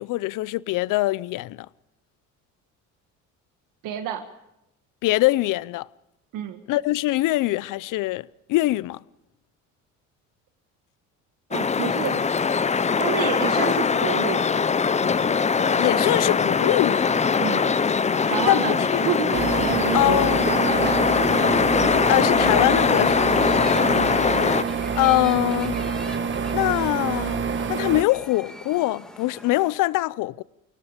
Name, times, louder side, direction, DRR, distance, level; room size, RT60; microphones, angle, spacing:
voice 1, 0.0-1.7 5.0-5.9 6.7-9.0 15.8-17.2 18.5-19.0 19.9-20.5 22.1-23.3 25.0-25.8 26.5-27.4 27.7-30.4, left 18 dB, 70° left, 0.6 m, -23 dB
voice 2, 3.8-4.2 6.3-6.6 11.5-12.2 13.0-14.4 17.4-17.7 18.3-21.5 23.8-24.2, right 10 dB, 80° right, 1.8 m, -29 dB
sound 1, 11.5-24.6, left 5 dB, 20° left, 0.7 m, -21 dB
sound 2, 16.1-29.7, equal, ahead, 2.2 m, -44 dB
sound 3, 19.3-28.0, right 5 dB, 35° right, 1.6 m, -27 dB
29.0 x 18.0 x 5.1 m
cardioid pair, 105°, 33 cm